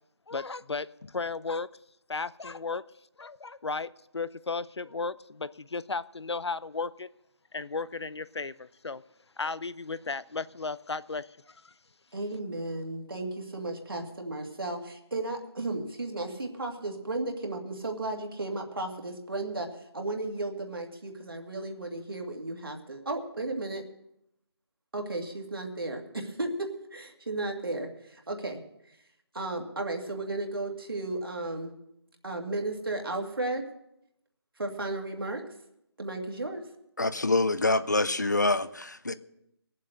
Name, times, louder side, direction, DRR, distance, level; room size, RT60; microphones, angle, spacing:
voice 1, 0.3-1.7 2.1-2.8 3.2-7.1 7.5-9.0 9.4-11.7, left 4 dB, 90° left, 0.7 m, -35 dB
voice 2, 12.1-23.8 24.9-28.9 29.3-31.7 32.2-33.7 34.6-35.4 36.0-36.6, right 2 dB, 60° right, 2.2 m, -34 dB
voice 3, 37.0-39.1, left 2 dB, 45° left, 0.6 m, -26 dB
19.5 x 7.5 x 6.5 m
figure-of-eight pair, 180°, 14 cm